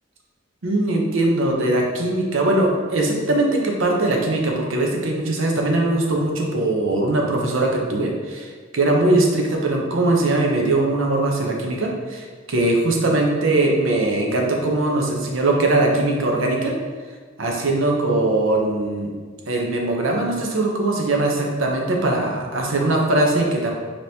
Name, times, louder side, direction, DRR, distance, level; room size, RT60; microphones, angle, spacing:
voice 1, 0.6-16.7 17.4-19.1 19.5-23.8, right 2 dB, 70° right, 0 dB, 0.7 m, -21 dB
5.0 x 2.9 x 2.7 m, 1.5 s
head